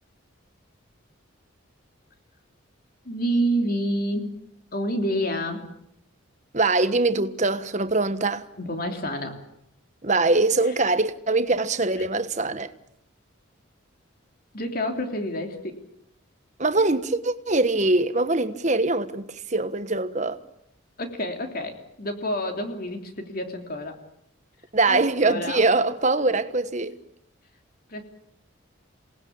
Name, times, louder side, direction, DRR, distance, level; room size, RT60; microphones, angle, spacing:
voice 1, 3.0-4.4 4.7-5.7 8.6-9.4 10.6-10.7 12.0-12.1 14.5-15.8 21.0-24.0 24.9-25.6 27.9-28.0, equal, 45° left, 3.2 m, -28 dB
voice 2, 6.5-8.5 10.0-12.7 16.6-20.4 24.7-27.0, right 3 dB, 35° right, 1.3 m, -23 dB
28.0 x 19.5 x 8.7 m
head